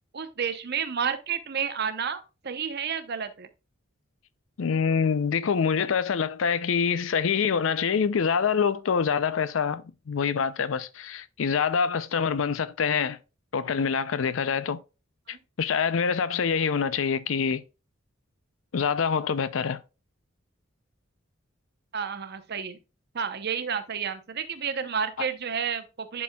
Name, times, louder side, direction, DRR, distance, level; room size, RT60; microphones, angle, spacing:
voice 1, 0.1-3.5 15.3-15.4 21.9-22.8 23.1-26.2, right 7 dB, 55° right, 0.8 m, -31 dB
voice 2, 4.6-13.2 13.5-14.8 15.3-17.6 18.7-19.8 25.2-25.3, left 6 dB, 70° left, 0.5 m, -25 dB
11.0 x 4.3 x 2.3 m
head